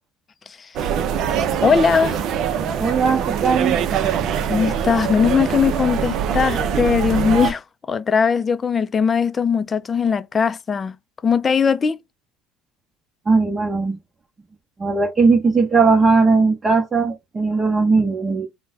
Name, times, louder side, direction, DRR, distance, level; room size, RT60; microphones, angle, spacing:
sound 1, 0.8-7.5, right 8 dB, 55° right, 0.5 m, -23 dB
voice 1, 1.6-2.2 4.5-10.9 11.2-12.0, left 6 dB, 30° left, 0.4 m, -19 dB
voice 2, 2.8-4.0 13.3-14.0 14.8-18.5, right 4 dB, 25° right, 0.8 m, -18 dB
3.2 x 2.1 x 4.0 m
supercardioid pair, 85°, 0 cm